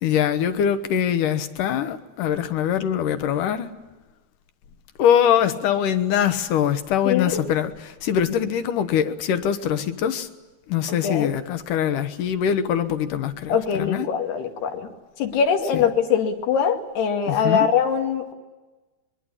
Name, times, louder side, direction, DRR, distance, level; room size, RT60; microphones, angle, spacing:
voice 1, 0.0-3.7 5.0-10.3 10.7-14.1 15.7-15.9 17.3-17.7, left 9 dB, 65° left, 11 dB, 2.5 m, -23 dB
voice 2, 7.1-7.4 10.9-11.3 13.5-14.9 15.2-18.3, left 7 dB, 85° left, 4 dB, 4.3 m, -22 dB
24.0 x 22.5 x 9.9 m, 1.2 s
omnidirectional pair, 4.6 m